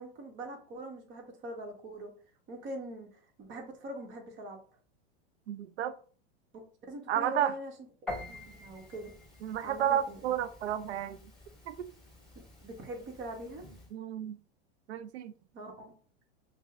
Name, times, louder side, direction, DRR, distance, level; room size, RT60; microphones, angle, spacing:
voice 1, 0.0-2.1 2.5-4.6 6.5-7.7 8.3-9.1 9.6-10.2 12.6-13.6 15.5-15.9, right 1 dB, 35° right, 1.2 m, -43 dB
voice 2, 5.5-6.0 7.1-7.5 9.4-11.3 11.7-11.9 13.9-14.4 14.9-15.3, right 10 dB, 85° right, 0.5 m, -32 dB
Piano, 8.1-13.9, left 1 dB, ahead, 1.8 m, -47 dB
5.3 x 2.3 x 2.4 m
hypercardioid pair, 110°, 32 cm